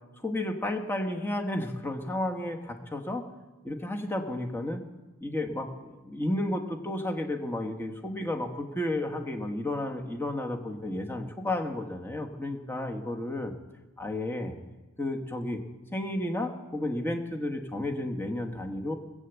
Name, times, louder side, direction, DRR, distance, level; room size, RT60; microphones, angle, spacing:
voice 1, 0.2-3.2 3.6-4.8 5.2-13.5 14.0-14.5 15.0-15.6 15.9-18.9, left 1 dB, 10° left, 3 dB, 1.3 m, -32 dB
19.5 x 8.1 x 8.1 m, 1.2 s
head